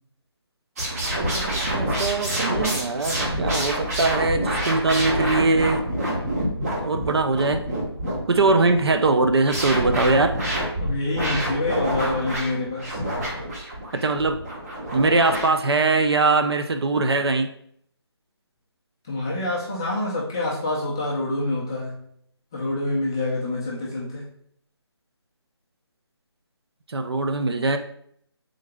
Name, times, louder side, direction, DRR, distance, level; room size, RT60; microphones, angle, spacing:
sound 1, 0.8-15.5, right 1 dB, 35° right, 1.2 m, -27 dB
voice 1, 1.3-6.2 6.8-7.6 8.3-10.4 13.9-14.4 14.9-17.5 26.9-27.8, right 3 dB, 65° right, 7 dB, 0.5 m, -22 dB
voice 2, 10.8-13.0 19.0-22.0 22.5-24.3, left 2 dB, 10° left, -5 dB, 0.3 m, -27 dB
6.3 x 3.8 x 2.2 m, 0.68 s
figure-of-eight pair, 160°, 14 cm